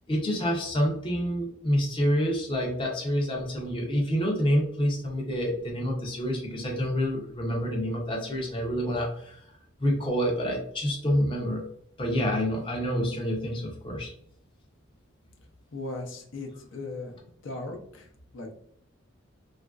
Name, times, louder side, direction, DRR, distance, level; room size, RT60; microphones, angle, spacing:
voice 1, 0.1-9.4 9.8-11.6 12.0-14.1, equal, 25° left, -1 dB, 0.5 m, -27 dB
voice 2, 15.7-17.2 17.4-18.6, left 2 dB, 70° left, 2 dB, 0.6 m, -38 dB
3.0 x 2.4 x 2.3 m, 0.67 s
head